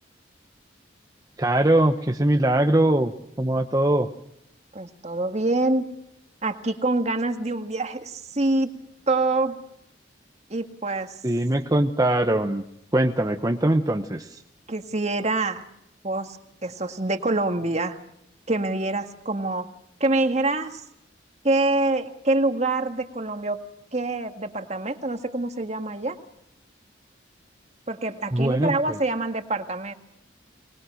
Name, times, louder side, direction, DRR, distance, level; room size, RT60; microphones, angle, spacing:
voice 1, 1.4-3.1 3.4-4.1 11.2-12.6 12.9-14.4 28.3-29.0, right 1 dB, 20° right, 4 dB, 0.9 m, -21 dB
voice 2, 4.7-5.9 6.4-8.7 9.1-9.6 10.5-11.1 14.7-15.7 16.0-18.0 18.5-19.7 20.0-20.8 21.4-23.6 23.9-26.2 27.9-29.9, right 2 dB, 35° right, 6 dB, 1.8 m, -25 dB
24.5 x 20.5 x 6.4 m, 0.78 s
head